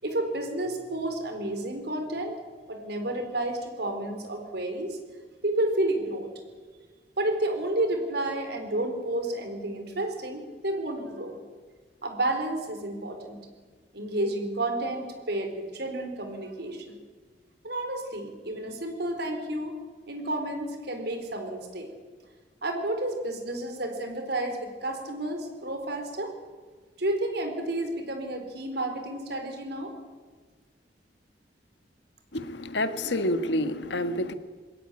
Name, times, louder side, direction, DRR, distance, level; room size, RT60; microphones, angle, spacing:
voice 1, 0.0-2.4 2.7-5.0 5.4-6.3 7.2-11.3 12.0-13.4 13.9-16.9 17.6-19.7 20.1-21.9 22.6-26.3 27.0-29.9, right 1 dB, 65° right, 6 dB, 4.2 m, -31 dB
voice 2, 32.3-34.3, left 1 dB, 75° left, 10 dB, 1.6 m, -28 dB
21.5 x 17.5 x 9.9 m, 1.5 s
head